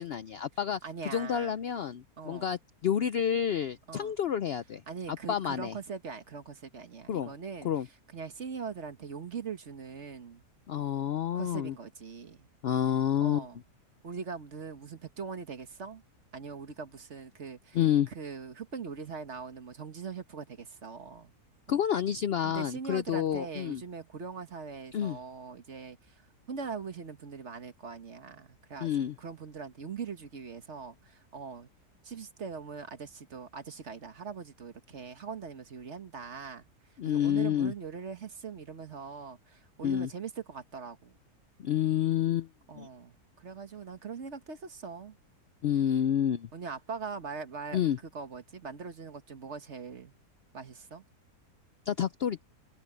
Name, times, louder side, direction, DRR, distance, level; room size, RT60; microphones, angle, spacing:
voice 1, 0.0-0.8 1.0-4.8 5.1-5.7 7.1-7.3 7.6-7.9 10.7-11.7 12.6-13.4 17.7-18.1 21.7-23.8 24.9-25.2 28.8-29.1 37.0-37.7 39.8-40.1 41.6-42.5 42.8-42.9 45.6-46.5 47.7-48.0 51.9-52.4, left 9 dB, 90° left, 0.5 m, -29 dB
voice 2, 0.8-1.6 2.2-2.4 3.9-4.1 4.9-7.7 8.1-10.4 11.3-12.5 13.2-13.6 14.0-16.0 16.3-17.8 18.1-21.3 21.7-21.8 22.4-26.2 26.5-31.7 32.0-36.6 37.1-41.2 42.7-45.2 46.5-47.8 48.1-50.1 50.5-51.0, right 5 dB, 45° right, 1.6 m, -41 dB
omnidirectional pair, 1.7 m